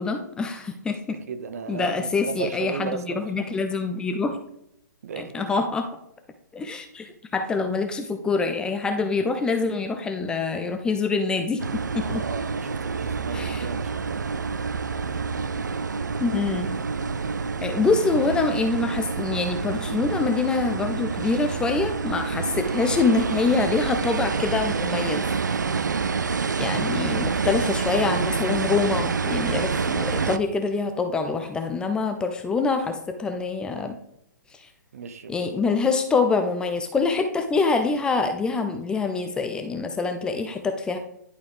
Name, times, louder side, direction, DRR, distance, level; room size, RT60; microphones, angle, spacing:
voice 1, 0.0-1.2 1.7-4.4 5.2-5.9 6.5-12.2 13.3-13.6 16.2-16.7 17.6-25.2 25.8-25.9 26.6-34.0 34.5-34.7 35.3-41.0, left 4 dB, 10° left, 6 dB, 0.4 m, -25 dB
voice 2, 1.3-3.2 5.0-5.5 12.0-14.3 34.9-35.3, right 5 dB, 50° right, 9 dB, 0.8 m, -35 dB
sound 1, 11.6-30.4, right 5 dB, 70° right, 0.4 m, -27 dB
11.0 x 4.0 x 3.3 m, 0.76 s
figure-of-eight pair, 125°, 10 cm